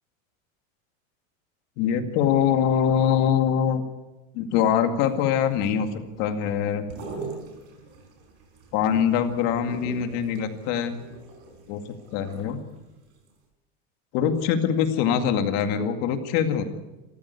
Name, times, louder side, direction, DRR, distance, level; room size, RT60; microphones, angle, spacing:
voice 1, 1.8-3.8 4.3-5.9 6.2-6.9 8.7-11.0 11.7-12.6 14.1-16.6, left 8 dB, 40° left, 7 dB, 2.2 m, -23 dB
sound 1, 5.0-12.9 13.3-13.4, right 3 dB, 40° right, 4.9 m, -42 dB
27.0 x 14.5 x 8.3 m, 1.0 s
supercardioid pair, 175°, 38 cm